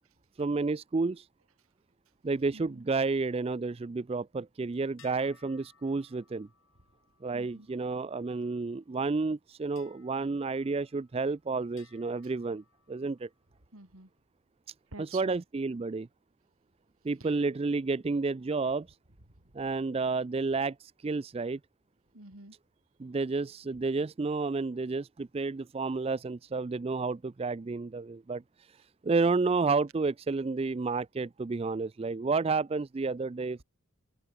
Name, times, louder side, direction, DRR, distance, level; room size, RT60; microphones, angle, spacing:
voice 1, 0.4-1.3 2.2-6.5 7.2-12.6 12.9-13.3 15.0-16.1 17.0-18.9 19.5-21.6 23.0-28.4 28.7-28.8 29.0-33.6, right 4 dB, 25° right, 0.3 m, -31 dB
voice 2, 2.5-2.8 7.3-7.7 13.7-14.1 14.9-15.4 17.2-17.3 19.4-19.5 22.1-22.6, right 3 dB, 70° right, 3.6 m, -48 dB
sound 1, 5.0-8.7 9.8-11.3 11.8-13.4, left 7 dB, 65° left, 3.8 m, -63 dB
open air
head